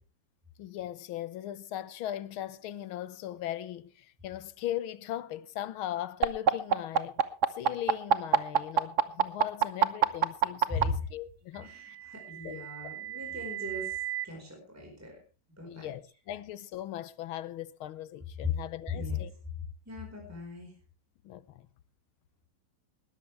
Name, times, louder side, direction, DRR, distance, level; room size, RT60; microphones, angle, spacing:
voice 1, 0.6-7.2 7.6-12.0 12.4-12.7 15.6-19.3 21.2-21.7, left 12 dB, 75° left, 1.6 m, -39 dB
sound 1, 6.2-10.8 12.0-14.2, right 8 dB, 50° right, 0.9 m, -26 dB
voice 2, 10.7-11.0 11.6-14.0 14.2-15.2 15.6-15.9 18.4-18.5 18.9-19.2 19.8-20.7, left 4 dB, 5° right, 4.7 m, -37 dB
20.0 x 12.5 x 3.4 m
omnidirectional pair, 2.3 m